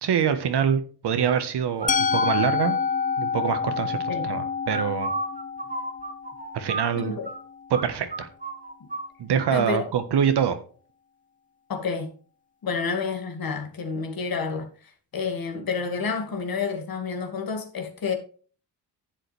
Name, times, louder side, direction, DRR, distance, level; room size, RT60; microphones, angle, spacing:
voice 1, 0.0-2.8 3.2-5.1 6.5-7.2 7.7-8.3 9.2-10.6, right 8 dB, 65° right, 1.5 m, -25 dB
sound 1, 1.8-2.4 4.7-7.4 7.7-7.9 8.1-9.1, right 2 dB, 20° right, 1.5 m, -32 dB
Musical instrument, 1.9-7.8, left 6 dB, 20° left, 0.3 m, -28 dB
voice 2, 7.0-7.3 8.8-8.9 9.5-9.9 11.7-12.1 12.6-18.2, left 5 dB, 50° left, 2.3 m, -29 dB
11.0 x 7.7 x 3.4 m
supercardioid pair, 65°, 43 cm